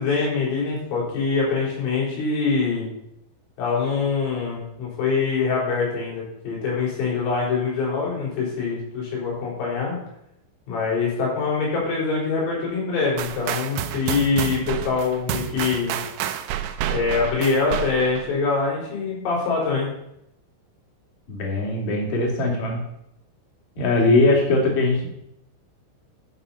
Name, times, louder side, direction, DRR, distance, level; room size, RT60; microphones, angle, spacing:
voice 1, 0.0-2.9 3.6-9.9 10.7-16.0 16.9-19.9, left 4 dB, 85° left, -5 dB, 6.9 m, -24 dB
sound 1, 13.2-18.3, right 11 dB, 80° right, 3.0 m, -29 dB
voice 2, 21.3-22.8 23.8-25.1, left 2 dB, 45° left, -1 dB, 3.1 m, -20 dB
11.0 x 6.9 x 5.6 m, 0.79 s
omnidirectional pair, 5.8 m